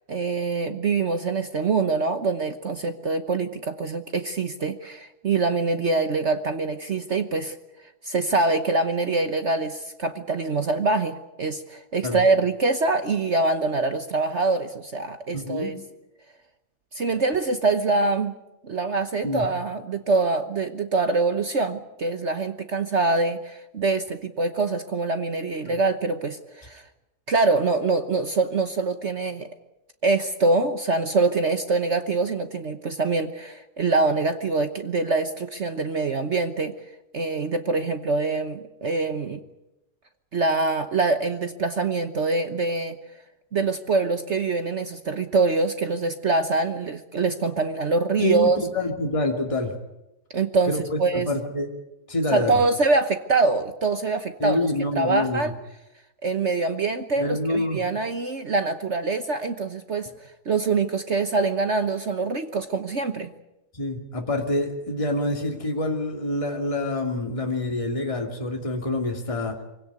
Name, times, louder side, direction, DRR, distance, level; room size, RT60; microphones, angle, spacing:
voice 1, 0.1-7.6 8.0-15.8 16.9-18.3 18.6-26.8 27.3-29.5 30.0-36.7 37.1-39.4 40.3-43.0 43.5-48.6 50.3-51.3 52.3-54.6 55.0-55.5 56.2-60.1 60.5-63.3, right 3 dB, 45° right, 8 dB, 1.3 m, -24 dB
voice 2, 15.3-15.7 19.2-19.5 25.7-25.8 48.2-49.7 50.7-51.7 52.1-52.6 54.4-55.4 57.2-57.8 63.7-69.6, left 2 dB, 20° left, 2 dB, 2.5 m, -26 dB
24.0 x 17.5 x 9.6 m, 0.93 s
omnidirectional pair, 1.8 m